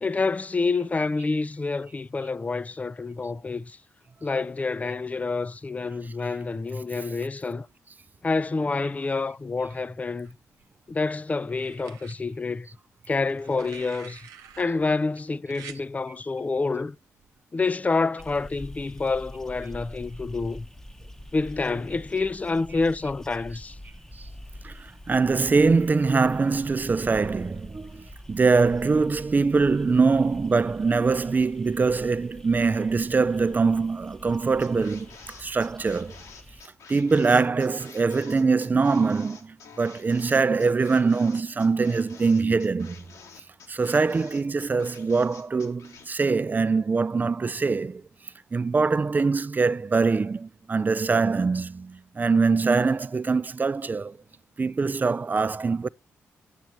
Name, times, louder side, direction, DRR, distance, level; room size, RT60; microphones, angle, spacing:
voice 1, 0.0-3.8 4.2-7.7 8.2-10.4 10.9-12.7 13.1-14.3 14.6-17.0 17.5-20.6 21.3-23.8, left 3 dB, 25° left, 0.4 m, -28 dB
sound 1, 10.2-10.9 11.5-12.2 13.3-14.6 15.5-15.8 17.2-17.4, right 9 dB, 90° right, 0.7 m, -47 dB
sound 2, 18.2-36.6, equal, 10° left, 0.9 m, -45 dB
voice 2, 24.6-36.2 36.9-43.0 43.7-48.0 48.5-54.2 54.6-55.9, right 4 dB, 30° right, 0.4 m, -23 dB
sound 3, 34.6-46.1, left 5 dB, 80° left, 1.7 m, -49 dB
9.2 x 7.1 x 4.5 m
supercardioid pair, 55°, 6 cm